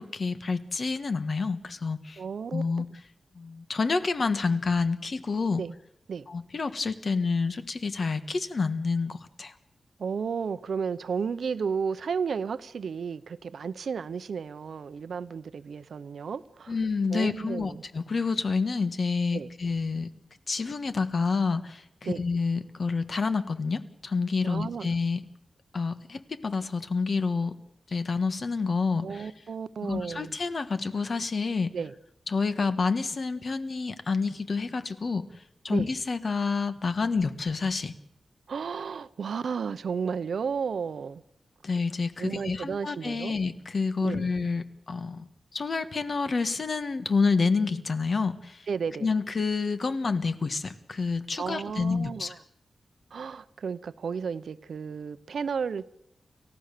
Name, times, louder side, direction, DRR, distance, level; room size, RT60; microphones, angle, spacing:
voice 1, 0.0-2.2 2.5-2.9 3.3-5.6 6.3-9.5 16.7-20.1 20.5-25.2 25.7-27.5 27.9-29.3 29.8-31.7 32.3-35.2 35.6-37.9 41.6-48.7 49.0-52.4, left 4 dB, 45° left, 1.4 m, -28 dB
voice 2, 2.2-2.6 5.6-5.7 6.1-6.3 10.0-16.7 17.1-17.8 19.3-19.5 22.0-22.2 24.4-24.9 29.0-30.4 31.7-31.9 35.7-35.9 38.5-41.2 42.2-43.4 44.0-44.3 48.7-49.1 51.4-52.3 53.1-55.9, right 6 dB, 75° right, 0.9 m, -33 dB
29.5 x 15.5 x 6.8 m
wide cardioid pair, 150°, 0 cm